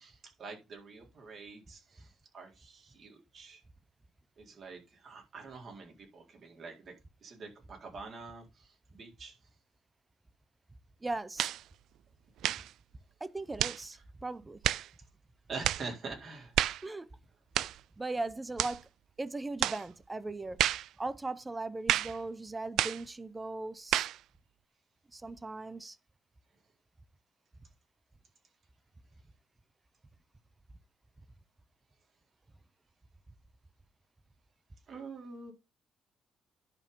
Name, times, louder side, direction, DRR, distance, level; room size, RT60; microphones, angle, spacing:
voice 1, 0.0-3.6 4.4-6.9 7.2-9.4 15.5-16.6 34.9-35.5, right 4 dB, 55° right, 4.2 m, -46 dB
voice 2, 11.0-11.5 13.2-14.6 16.8-17.1 18.0-18.9 19.2-20.6 21.0-24.1 25.1-26.0, right 2 dB, 20° right, 1.0 m, -38 dB
sound 1, 11.4-11.6 12.4-12.7 13.6-13.8 14.6-14.9 15.6-15.9 16.5-16.8 17.5-17.8 18.6-18.8 19.6-19.8 20.6-20.9 21.9-22.2 22.8-23.0 23.9-24.2, right 12 dB, 80° right, 0.4 m, -30 dB
11.0 x 4.9 x 5.6 m
cardioid pair, 90°, 0 cm